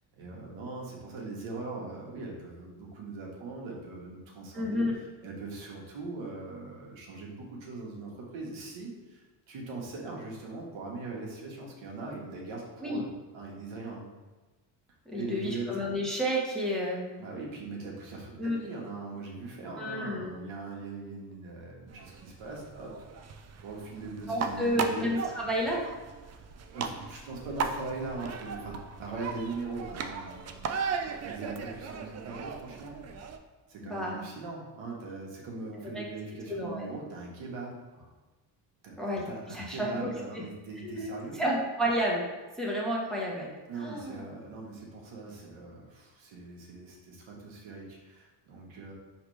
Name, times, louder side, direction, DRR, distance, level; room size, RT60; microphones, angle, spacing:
voice 1, 0.2-4.9 5.2-13.1 13.3-14.1 15.2-15.8 17.2-22.9 23.6-25.1 26.2-30.8 31.2-33.0 33.7-38.1 38.8-39.0 39.2-41.4 43.7-48.9, right 3 dB, 65° right, -2 dB, 1.3 m, -41 dB
voice 2, 4.5-5.0 12.8-13.0 15.1-17.1 18.4-18.6 19.8-20.3 24.3-25.9 33.8-34.2 35.9-36.0 36.5-36.9 39.0-40.4 40.8-41.1 41.3-42.3 42.6-43.5 43.8-44.2, equal, ahead, -4 dB, 1.0 m, -31 dB
sound 1, 21.9-33.4, right 5 dB, 35° right, 0.4 m, -37 dB
4.9 x 3.2 x 3.2 m, 1.2 s
supercardioid pair, 85°, 50 cm